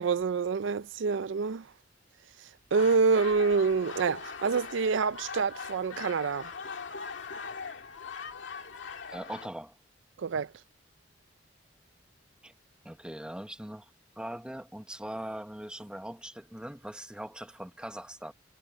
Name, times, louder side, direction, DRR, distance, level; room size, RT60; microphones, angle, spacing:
voice 1, 0.0-1.7 2.7-6.5 10.2-10.5, right 5 dB, 85° right, 0.5 m, -27 dB
sound 1, 2.7-9.5, left 5 dB, 70° left, 2.2 m, -41 dB
voice 2, 9.1-9.8 12.4-12.5 12.8-13.9 14.2-18.3, right 1 dB, 5° right, 1.1 m, -41 dB
head